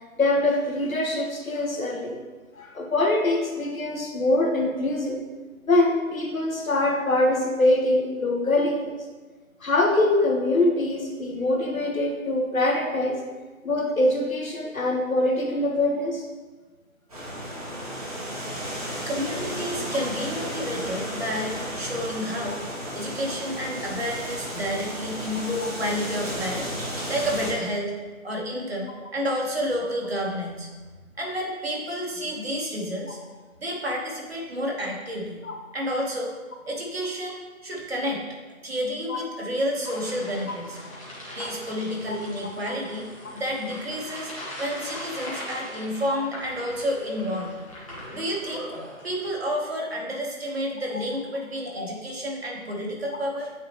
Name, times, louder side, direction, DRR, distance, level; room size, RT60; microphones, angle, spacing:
voice 1, 0.2-2.2 2.6-5.2 5.7-8.9 9.6-13.2 13.6-16.2 25.6-25.7 35.4-35.5 39.1-39.2 40.5-40.6 42.1-42.2 42.7-42.8 46.1-46.2 51.8-51.9, left 2 dB, 70° left, 2 dB, 1.3 m, -24 dB
sound 1, 17.1-27.5, equal, 25° right, 1.4 m, -33 dB
voice 2, 19.1-22.6 22.9-26.7 27.1-27.9 28.2-30.7 31.2-33.2 33.6-35.4 35.7-36.4 36.6-38.2 38.6-40.8 41.3-43.1 43.3-44.3 44.6-47.5 48.1-48.6 49.0-53.5, equal, 45° right, -2 dB, 1.4 m, -30 dB
sound 2, 39.8-49.4, equal, 25° left, 1.4 m, -40 dB
8.7 x 4.2 x 3.0 m, 1.3 s
figure-of-eight pair, 170°, 42 cm